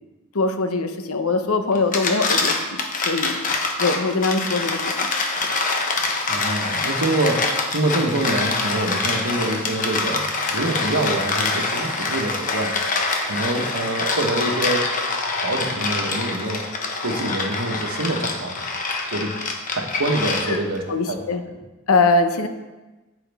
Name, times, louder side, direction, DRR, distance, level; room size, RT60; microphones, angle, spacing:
voice 1, 0.3-3.4 3.8-5.1 20.5-20.6 20.9-21.4 21.9-22.5, left 3 dB, 85° left, 8 dB, 0.8 m, -22 dB
sound 1, 1.7-20.8, left 3 dB, 40° left, 1.0 m, -25 dB
voice 2, 6.3-10.2 10.5-12.8 13.2-14.9 15.4-16.6 17.0-18.6 19.1-19.4 19.7-21.2, right 2 dB, 90° right, 3 dB, 1.2 m, -25 dB
9.3 x 8.4 x 3.5 m, 1.1 s
head